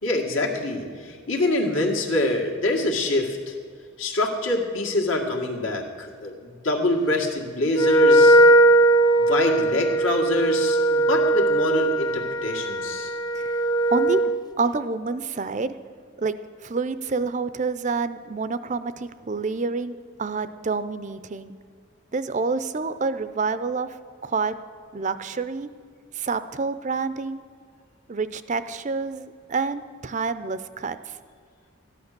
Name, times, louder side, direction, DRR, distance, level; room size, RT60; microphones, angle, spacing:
voice 1, 0.0-3.5 4.0-8.4 9.2-13.1, left 2 dB, 75° left, 0 dB, 2.1 m, -25 dB
Wind instrument woodwind instrument, 7.7-14.4, right 1 dB, 20° left, 0.5 m, -19 dB
voice 2, 13.9-14.2 14.6-15.8 16.2-16.4 16.6-21.5 22.1-24.0 24.2-24.5 24.9-25.7 26.1-27.4 28.1-31.2, right 4 dB, 35° right, 13 dB, 0.4 m, -28 dB
14.0 x 10.5 x 6.7 m, 2.1 s
head